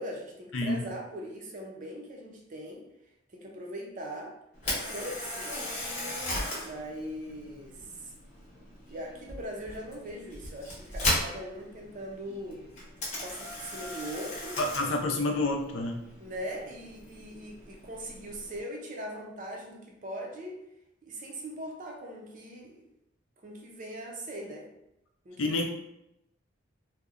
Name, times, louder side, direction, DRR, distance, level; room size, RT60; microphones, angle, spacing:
voice 1, 0.0-2.8 3.3-4.4 4.9-5.6 6.6-8.1 8.9-12.6 13.2-14.6 16.2-20.6 21.0-22.9 23.4-24.7 25.2-25.7, equal, 40° right, 0 dB, 0.5 m, -40 dB
voice 2, 0.5-0.9 14.6-16.0 25.4-25.7, left 2 dB, 70° left, 2 dB, 0.4 m, -28 dB
Camera, 4.5-18.6, left 1 dB, 35° left, 0.8 m, -37 dB
2.7 x 2.1 x 2.4 m, 0.85 s
head